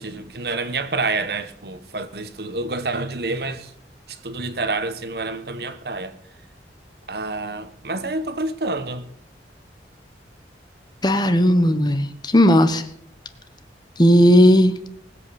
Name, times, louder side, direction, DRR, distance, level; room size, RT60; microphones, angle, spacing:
voice 1, 0.0-3.7 4.1-6.2 7.1-9.1 11.6-11.8, right 3 dB, 60° right, 1.3 m, -28 dB
voice 2, 11.0-12.8 14.0-14.7, equal, 25° left, 1.2 m, -15 dB
19.5 x 8.2 x 7.0 m
head